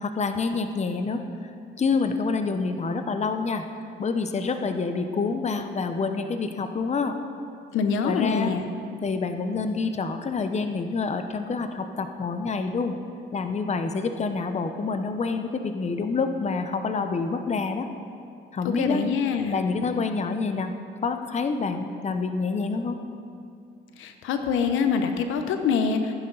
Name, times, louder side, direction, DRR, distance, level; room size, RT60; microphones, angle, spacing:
voice 1, 0.0-1.5 1.8-3.6 4.0-7.1 8.0-8.5 9.0-13.0 13.3-17.9 18.5-19.0 19.5-20.7 21.0-23.0, left 4 dB, 35° left, 7 dB, 0.8 m, -27 dB
voice 2, 7.7-8.7 18.8-19.6 24.0-26.1, left 5 dB, 90° left, 7 dB, 0.9 m, -25 dB
15.0 x 9.9 x 4.0 m, 2.5 s
cardioid pair, 90°, 20 cm